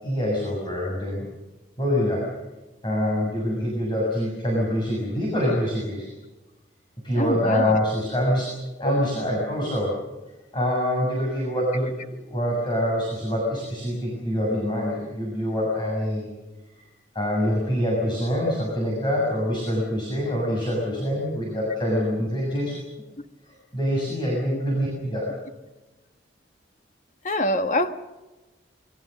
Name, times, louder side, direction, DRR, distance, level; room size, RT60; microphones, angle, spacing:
voice 1, 0.0-1.3 1.8-2.2 2.8-6.1 7.0-8.5 8.8-9.9 10.5-11.9 12.3-16.3 16.8-16.9 17.1-22.8 23.7-25.3, equal, 25° left, 6.8 m, -25 dB
voice 2, 7.2-7.9 8.8-9.0 24.5-24.6 27.2-27.9, left 1 dB, 40° left, 1.5 m, -25 dB
25.5 x 23.0 x 6.7 m
head